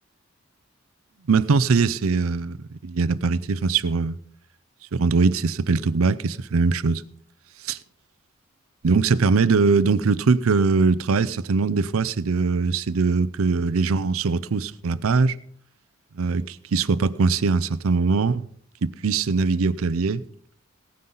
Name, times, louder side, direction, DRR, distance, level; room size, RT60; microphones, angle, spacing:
voice 1, 1.3-4.2 4.9-7.0 7.7-7.8 8.8-15.4 16.2-18.4 18.8-20.2, right 4 dB, 80° right, 0.5 m, -21 dB
17.0 x 9.4 x 4.0 m
head